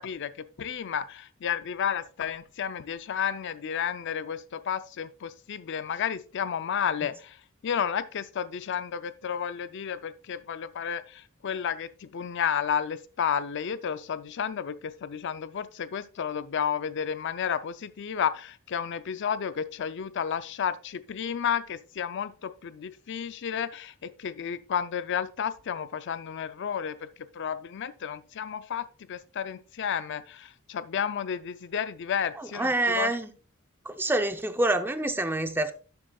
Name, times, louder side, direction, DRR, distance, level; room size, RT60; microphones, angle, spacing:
voice 1, 0.0-7.4 7.6-27.1 27.3-33.1, left 8 dB, 60° left, 0.4 m, -32 dB
voice 2, 32.4-33.3 33.8-35.7, right 2 dB, 10° right, 0.6 m, -27 dB
11.5 x 7.6 x 2.3 m
head